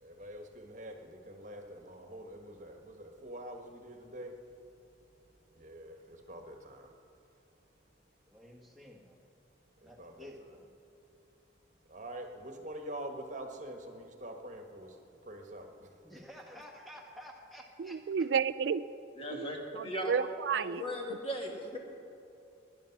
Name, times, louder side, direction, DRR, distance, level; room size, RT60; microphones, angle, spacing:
voice 1, 0.0-4.3 5.6-6.9 9.8-10.3 11.9-14.9 15.3-15.7, right 1 dB, 40° right, 4 dB, 1.3 m, -45 dB
voice 2, 8.3-9.2 9.8-10.7 16.0-18.0, equal, ahead, 0 dB, 1.5 m, -51 dB
voice 3, 17.8-18.8 19.3-19.4 19.7-20.8, right 6 dB, 65° right, 12 dB, 0.3 m, -31 dB
voice 4, 19.2-20.2 20.5-21.8, equal, 30° left, 1 dB, 1.9 m, -38 dB
19.5 x 10.5 x 5.9 m, 2.7 s
head